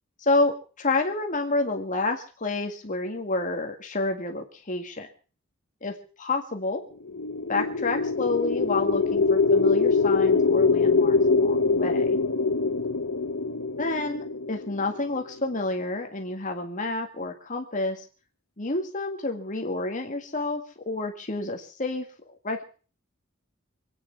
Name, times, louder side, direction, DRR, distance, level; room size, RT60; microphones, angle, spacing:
voice 1, 0.2-5.1 5.8-6.8 7.5-12.2 13.8-18.0 18.6-22.1 22.4-22.6, left 2 dB, 40° left, 4 dB, 1.9 m, -29 dB
sound 1, 7.0-15.2, left 4 dB, 90° left, 1.1 m, -23 dB
26.0 x 9.6 x 5.8 m, 0.40 s
head